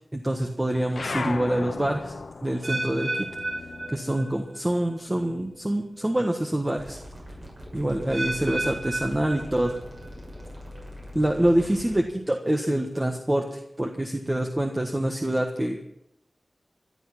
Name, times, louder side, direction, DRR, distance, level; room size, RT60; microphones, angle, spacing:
voice 1, 0.1-2.1 2.4-3.3 3.9-7.0 7.7-9.8 11.1-15.9, right 1 dB, 20° right, 3 dB, 1.5 m, -26 dB
sound 1, 0.9-5.8 6.1-7.5, left 4 dB, 90° left, 1.1 m, -37 dB
sound 2, 2.6-4.6 4.9-5.3 6.0-6.1 8.1-10.1 10.4-10.8 11.5-11.6, right 2 dB, 75° right, 6.0 m, -33 dB
sound 3, 6.8-12.0, equal, 45° right, 6.4 m, -42 dB
18.0 x 12.0 x 6.0 m, 0.77 s
wide cardioid pair, 85°, 0 cm